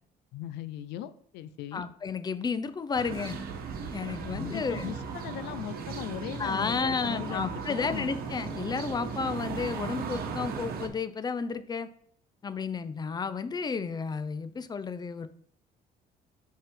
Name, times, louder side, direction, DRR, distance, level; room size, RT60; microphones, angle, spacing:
voice 1, 0.3-1.9 4.3-8.1, left 11 dB, 85° left, 13 dB, 0.5 m, -39 dB
voice 2, 1.7-3.4 3.9-4.9 6.4-11.9 12.4-15.3, left 5 dB, 25° left, 13 dB, 0.5 m, -32 dB
sound 1, 2.9-10.9, right 5 dB, 65° right, 1.1 m, -37 dB
5.3 x 5.2 x 3.7 m, 0.64 s
cardioid pair, 110°, 17 cm